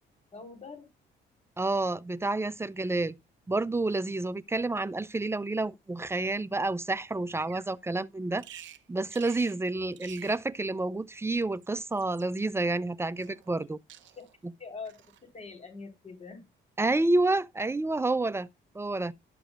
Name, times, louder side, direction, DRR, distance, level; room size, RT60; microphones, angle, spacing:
voice 1, 0.3-0.9 14.2-14.3 14.6-15.0 15.3-16.5, left 4 dB, 35° left, 4.0 m, -43 dB
voice 2, 1.6-3.2 3.5-8.6 8.9-13.8 16.8-18.5 18.7-19.1, right 2 dB, 15° right, 0.5 m, -29 dB
Bird vocalization bird call bird song, 7.4-7.7 8.4-8.8 9.1-9.6 9.9-10.4 11.4-12.4 13.2-13.6 13.9-14.4 14.9-15.2, right 12 dB, 70° right, 0.8 m, -50 dB
12.5 x 6.9 x 2.4 m
cardioid pair, 90°, 20 cm